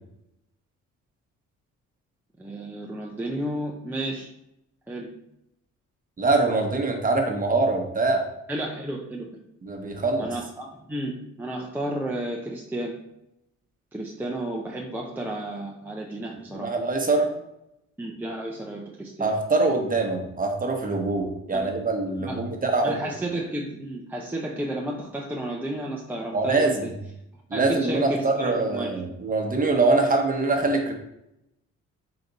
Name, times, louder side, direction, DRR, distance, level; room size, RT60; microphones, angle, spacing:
voice 1, 2.4-4.3 4.9-5.1 8.5-9.3 10.2-12.9 13.9-16.7 18.0-19.3 21.5-21.6 22.2-22.4 22.8-26.9 27.5-29.0, right 1 dB, 5° right, -1 dB, 0.6 m, -32 dB
voice 2, 6.2-8.2 9.6-10.3 16.5-17.3 19.2-23.0 26.3-26.9 27.5-30.9, right 3 dB, 30° right, 2 dB, 1.0 m, -24 dB
3.9 x 3.3 x 4.0 m, 0.83 s
cardioid pair, 90°, 30 cm